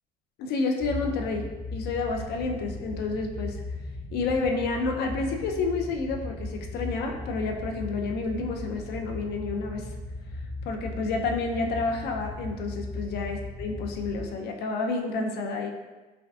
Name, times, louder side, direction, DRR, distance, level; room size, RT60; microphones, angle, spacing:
voice 1, 0.4-3.6 4.1-9.9 10.6-15.7, left 3 dB, 75° left, 3 dB, 0.4 m, -30 dB
sound 1, 0.8-14.2, left 2 dB, 20° left, 0.5 m, -37 dB
3.4 x 2.3 x 2.4 m, 1.2 s
cardioid pair, 110°, 17 cm